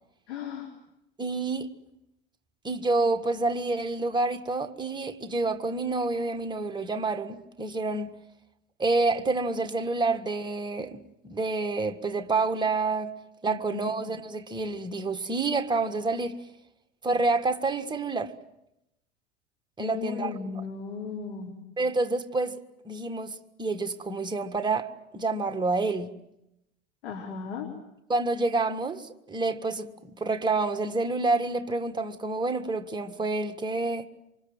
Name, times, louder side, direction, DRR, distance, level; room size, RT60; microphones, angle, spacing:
voice 1, 0.3-0.7 13.5-13.9 19.8-21.5 27.0-27.7, left 6 dB, 65° left, 4.3 m, -36 dB
voice 2, 1.2-1.7 2.6-8.1 8.8-13.1 13.4-16.4 17.0-18.3 19.8-20.3 21.8-22.6 22.8-24.9 25.1-26.1 28.1-34.1, right 3 dB, 10° right, 1.6 m, -28 dB
28.0 x 25.0 x 7.6 m
figure-of-eight pair, 80°, 36 cm